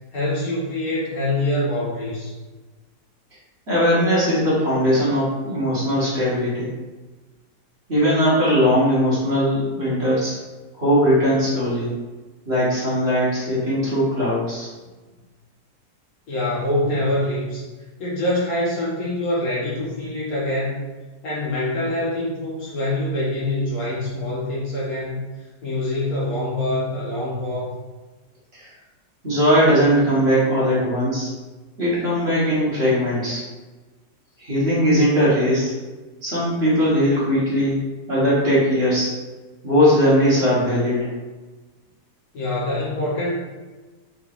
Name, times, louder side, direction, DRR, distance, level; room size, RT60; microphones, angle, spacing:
voice 1, 0.1-2.3 16.3-17.6 18.0-20.8 21.2-25.2 25.6-27.7 42.3-43.4, left 1 dB, 60° left, -7 dB, 1.5 m, -25 dB
voice 2, 3.7-6.7 7.9-10.4 10.7-12.0 12.4-14.7 28.5-28.7 29.2-31.3 31.8-33.4 34.4-35.7 36.2-37.8 38.1-39.1 39.6-41.1, equal, 40° right, -9 dB, 1.5 m, -19 dB
3.9 x 3.6 x 2.5 m, 1.2 s
omnidirectional pair, 1.8 m